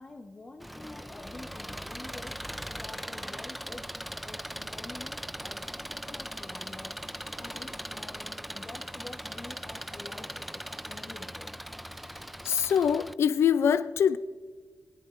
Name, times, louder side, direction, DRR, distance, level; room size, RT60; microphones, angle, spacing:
voice 1, 0.0-2.4 2.7-3.8 4.2-11.5, left 2 dB, 25° left, 1.1 m, -48 dB
Engine, 0.6-13.1, equal, ahead, 0.3 m, -40 dB
sound 1, 2.4-12.8, right 2 dB, 25° right, 3.2 m, -59 dB
voice 2, 12.4-14.2, left 8 dB, 65° left, 0.4 m, -24 dB
19.5 x 18.5 x 2.6 m
wide cardioid pair, 140°, 5 cm